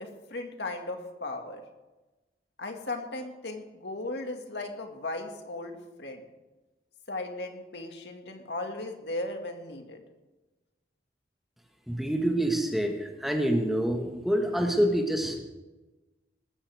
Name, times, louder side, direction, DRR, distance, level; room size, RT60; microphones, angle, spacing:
voice 1, 0.0-1.6 2.6-6.2 7.1-10.0, left 2 dB, 75° left, 3 dB, 2.1 m, -37 dB
voice 2, 11.9-15.4, equal, ahead, 2 dB, 1.5 m, -27 dB
19.5 x 14.0 x 3.6 m, 1.1 s
head